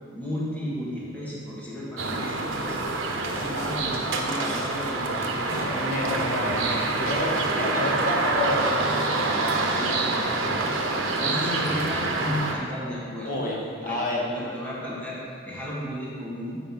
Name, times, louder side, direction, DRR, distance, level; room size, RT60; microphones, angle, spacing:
voice 1, 0.1-5.7 9.7-10.8 11.2-13.5 13.8-15.2 15.4-16.6, left 1 dB, 10° left, -7 dB, 1.5 m, -34 dB
sound 1, 2.0-12.5, right 3 dB, 85° right, 0.8 m, -26 dB
voice 2, 3.1-3.9 5.6-9.4 10.9-11.3 13.2-14.3, left 1 dB, 45° left, -3 dB, 1.4 m, -30 dB
7.9 x 4.5 x 5.9 m, 2.3 s
head